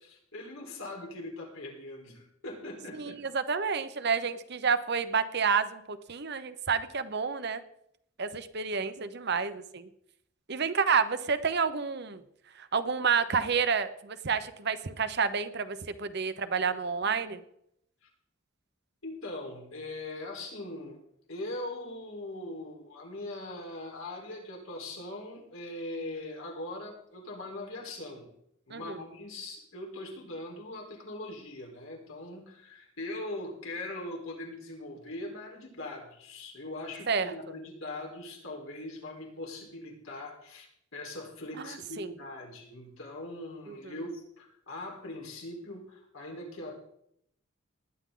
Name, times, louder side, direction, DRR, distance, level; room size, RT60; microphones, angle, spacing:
voice 1, 0.0-3.2 18.0-18.1 19.0-21.0 21.3-28.3 28.7-40.7 40.9-46.8, left 2 dB, 80° left, -1 dB, 4.3 m, -41 dB
voice 2, 3.0-7.6 8.2-9.9 10.5-12.2 12.6-17.4 28.7-29.0 37.1-37.3 41.6-42.1 43.7-43.8, right 5 dB, 55° right, 12 dB, 0.9 m, -29 dB
19.5 x 10.5 x 3.9 m, 0.73 s
head